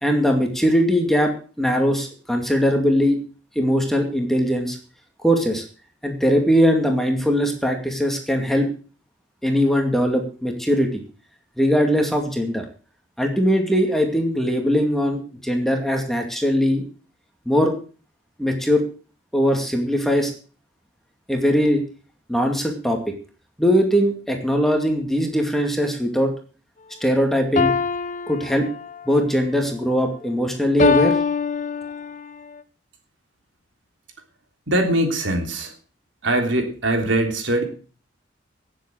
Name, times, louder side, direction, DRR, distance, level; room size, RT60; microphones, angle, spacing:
voice 1, 0.0-3.2 3.6-4.8 5.2-5.6 6.0-8.7 9.4-11.0 11.6-12.6 13.2-16.8 17.5-17.7 18.4-18.8 19.3-20.3 21.3-21.8 22.3-23.0 23.6-26.3 27.0-27.7 28.3-28.7 29.1-31.1, equal, ahead, 3 dB, 2.3 m, -20 dB
sound 1, 27.6-29.1 30.8-32.3, left 5 dB, 40° left, 0.8 m, -23 dB
voice 2, 34.7-35.7 36.2-37.6, right 1 dB, 70° right, 4 dB, 3.3 m, -21 dB
18.0 x 7.8 x 6.3 m, 0.38 s
head